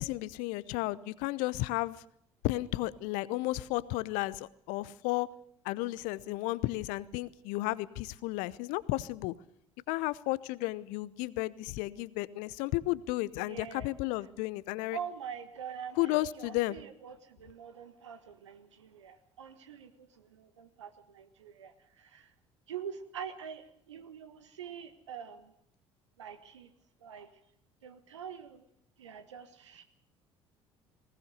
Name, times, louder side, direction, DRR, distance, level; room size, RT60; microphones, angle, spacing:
voice 1, 0.0-2.0 2.4-5.3 5.6-9.3 9.9-15.0 16.0-16.8, left 18 dB, 60° left, 19 dB, 0.8 m, -33 dB
voice 2, 13.4-13.9 14.9-22.3 22.7-25.5 26.2-26.7 27.0-27.3 27.8-28.6 29.0-29.8, right 8 dB, 75° right, 10 dB, 1.6 m, -45 dB
20.5 x 19.0 x 6.8 m, 0.70 s
figure-of-eight pair, 55°, 15 cm